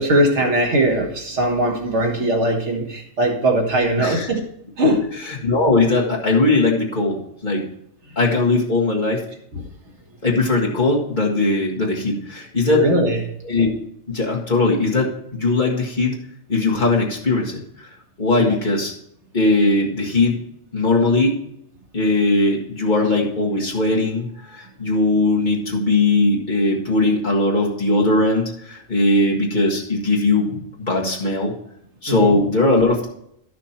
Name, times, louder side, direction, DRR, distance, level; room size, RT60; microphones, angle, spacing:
voice 1, 0.0-4.5 4.8-5.1 9.5-9.7 12.7-13.2 18.4-18.5 32.1-32.4, right 1 dB, 80° right, 2 dB, 1.8 m, -20 dB
voice 2, 4.0-4.3 5.4-7.7 8.2-9.2 10.2-12.8 13.4-13.7 14.1-16.2 16.5-17.6 18.2-18.9 19.3-20.4 20.7-21.4 21.9-31.5 32.0-33.1, left 2 dB, 40° left, -3 dB, 2.0 m, -19 dB
12.0 x 6.3 x 4.4 m, 0.73 s
omnidirectional pair, 1.2 m